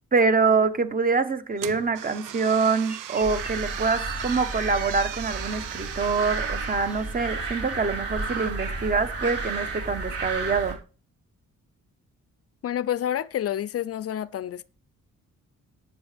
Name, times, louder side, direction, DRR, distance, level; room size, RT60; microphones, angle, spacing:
voice 1, 0.1-10.8, right 4 dB, 25° right, 1.3 m, -25 dB
sound 1, 1.6-7.7, right 12 dB, 75° right, 0.7 m, -39 dB
sound 2, 2.2-8.2, equal, 5° right, 2.9 m, -50 dB
sound 3, 3.2-10.7, right 3 dB, 45° right, 3.7 m, -32 dB
voice 2, 12.6-14.7, left 11 dB, 50° left, 0.4 m, -29 dB
17.5 x 8.4 x 3.5 m
wide cardioid pair, 175°, 32 cm